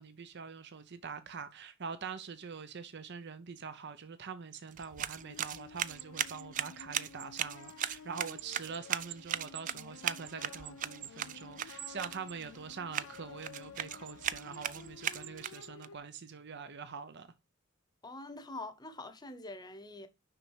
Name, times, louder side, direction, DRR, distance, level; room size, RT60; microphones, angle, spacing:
voice 1, 0.0-17.3, right 5 dB, 55° right, 0.7 m, -44 dB
Garden Shears, 4.7-15.9, right 10 dB, 40° right, 0.4 m, -39 dB
sound 1, 5.1-16.0, left 6 dB, 85° left, 0.5 m, -53 dB
voice 2, 18.0-20.1, left 2 dB, 20° left, 0.9 m, -45 dB
6.2 x 5.4 x 4.7 m
head